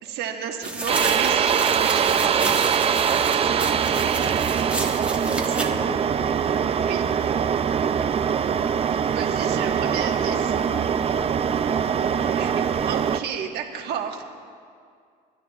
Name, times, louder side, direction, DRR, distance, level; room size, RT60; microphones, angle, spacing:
voice 1, 0.0-4.1 5.2-5.8 6.7-7.1 9.1-10.5 12.4-14.2, right 8 dB, 75° right, 2 dB, 1.5 m, -33 dB
sound 1, 0.6-5.7, right 2 dB, 5° right, 1.2 m, -31 dB
sound 2, 0.9-13.2, right 7 dB, 35° right, 0.5 m, -23 dB
voice 2, 3.9-4.5 5.2-6.3 9.5-9.6 10.1-11.9, left 2 dB, 30° left, 3 dB, 1.7 m, -40 dB
29.0 x 12.0 x 2.4 m, 2.2 s
cardioid pair, 110°, 17 cm